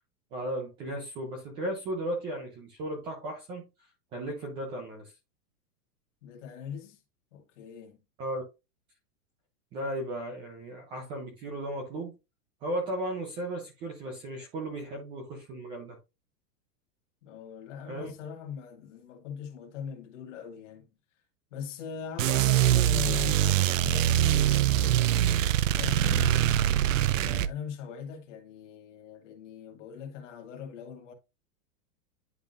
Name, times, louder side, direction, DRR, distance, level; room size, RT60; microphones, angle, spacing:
voice 1, 0.3-3.7 4.1-5.1 8.2-8.4 9.7-12.1 12.6-16.0 17.9-18.1, right 1 dB, 10° right, 0.5 m, -35 dB
voice 2, 6.2-7.0 7.3-8.0 17.2-20.9 21.5-24.2 25.3-26.4 27.1-31.1, left 7 dB, 50° left, 1.7 m, -40 dB
sound 1, 22.2-27.5, right 11 dB, 55° right, 0.5 m, -24 dB
10.5 x 3.6 x 2.5 m
supercardioid pair, 170°, 47 cm